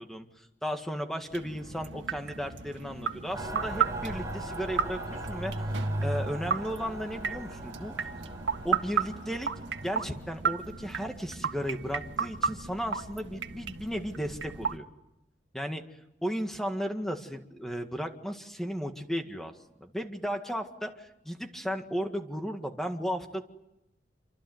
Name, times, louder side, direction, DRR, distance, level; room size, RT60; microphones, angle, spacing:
voice 1, 0.0-5.5 6.0-7.9 8.6-9.5 9.8-14.9 15.5-15.8 16.2-19.5 19.8-23.4, equal, ahead, 5 dB, 1.9 m, -35 dB
sound 1, 1.3-14.8, right 6 dB, 80° right, 1.7 m, -34 dB
Mechanical fan, 3.3-10.1, right 1 dB, 15° right, 4.4 m, -37 dB
28.0 x 25.5 x 8.0 m, 0.89 s
head